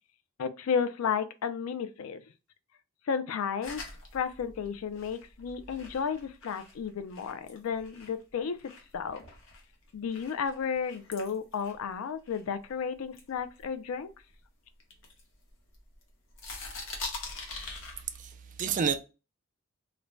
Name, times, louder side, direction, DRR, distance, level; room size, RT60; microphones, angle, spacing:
voice 1, 0.4-2.2 3.1-3.8 4.1-8.6 8.9-9.2 9.9-14.1, left 6 dB, 85° left, 0.4 m, -33 dB
sound 1, 3.6-8.2 8.6-12.7 13.1-14.3 14.8-16.0 16.3-18.3, left 3 dB, 65° left, 0.8 m, -44 dB
voice 2, 17.6-19.0, right 6 dB, 40° right, 0.3 m, -32 dB
2.5 x 2.1 x 3.1 m
head